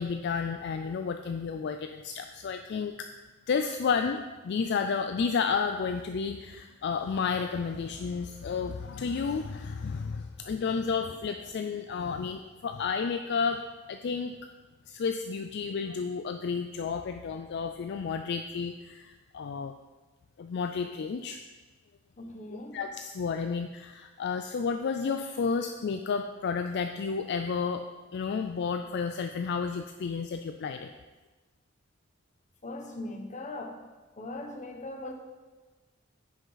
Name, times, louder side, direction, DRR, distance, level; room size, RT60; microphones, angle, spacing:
voice 1, 0.0-3.1 3.5-13.6 13.9-14.4 14.9-19.7 20.4-21.4 22.5-27.9 28.1-30.9, left 5 dB, 55° left, 6 dB, 0.4 m, -31 dB
voice 2, 22.2-22.8 32.6-33.8 34.2-35.1, left 2 dB, 35° left, 4 dB, 0.9 m, -39 dB
9.7 x 5.7 x 3.9 m, 1.2 s
head